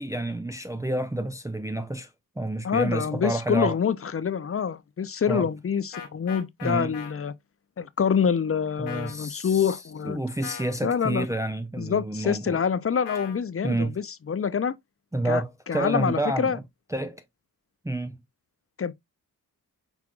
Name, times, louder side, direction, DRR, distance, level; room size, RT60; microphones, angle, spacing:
voice 1, 0.0-2.1 2.4-3.7 5.3-5.5 6.6-6.9 8.8-9.8 10.0-12.6 13.6-13.9 15.1-16.6 16.9-17.2 17.8-18.2, right 1 dB, 10° right, 0.6 m, -29 dB
voice 2, 2.6-7.3 7.8-10.2 10.8-11.3 11.8-14.7 15.2-16.6 18.8-18.9, left 7 dB, 35° left, 0.7 m, -26 dB
sound 1, 5.9-7.1 8.9-9.2 10.4-10.8 13.0-13.4, left 7 dB, 80° left, 1.3 m, -39 dB
6.1 x 3.4 x 2.5 m
supercardioid pair, 50°, 41 cm